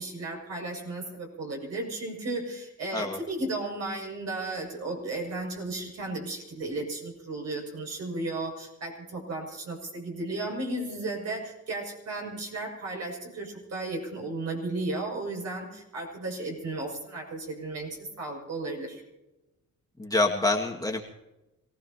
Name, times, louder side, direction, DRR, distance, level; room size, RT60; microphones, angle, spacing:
voice 1, 0.0-19.0, right 2 dB, 60° right, 0 dB, 7.2 m, -34 dB
voice 2, 20.0-21.0, left 2 dB, 10° left, 0 dB, 2.1 m, -26 dB
27.0 x 18.0 x 3.0 m, 0.98 s
cardioid pair, 90°, 30 cm